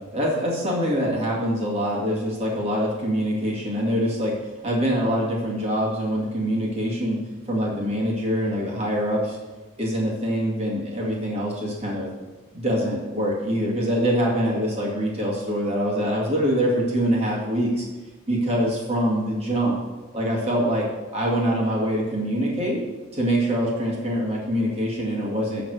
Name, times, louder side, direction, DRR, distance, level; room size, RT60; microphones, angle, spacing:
voice 1, 0.1-4.4 4.6-7.2 7.5-9.4 9.8-12.1 12.5-17.9 18.3-19.8 20.1-20.9 21.1-22.8 23.1-25.6, equal, 30° right, -4 dB, 2.2 m, -24 dB
11.5 x 4.0 x 6.3 m, 1.2 s
head